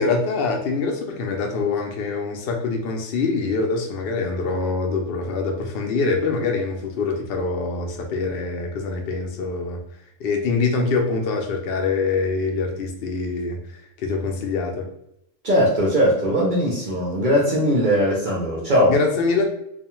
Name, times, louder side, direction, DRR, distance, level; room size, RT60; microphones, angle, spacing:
voice 1, 0.0-9.8 10.2-14.8 18.9-19.4, left 4 dB, 60° left, 2 dB, 0.6 m, -24 dB
voice 2, 15.4-18.9, equal, 50° right, -4 dB, 0.6 m, -19 dB
2.4 x 2.3 x 2.9 m, 0.78 s
omnidirectional pair, 1.3 m